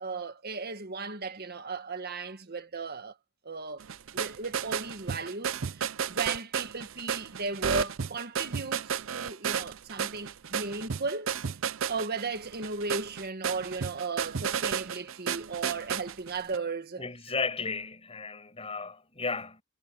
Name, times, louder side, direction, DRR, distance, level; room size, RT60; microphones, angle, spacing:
voice 1, 0.0-3.1 3.4-3.8 4.1-11.3 11.9-17.0, right 4 dB, 50° right, 1.5 m, -36 dB
sound 1, 3.8-16.6, right 7 dB, 70° right, 0.6 m, -33 dB
voice 2, 17.0-19.6, left 4 dB, 30° left, 6.9 m, -34 dB
head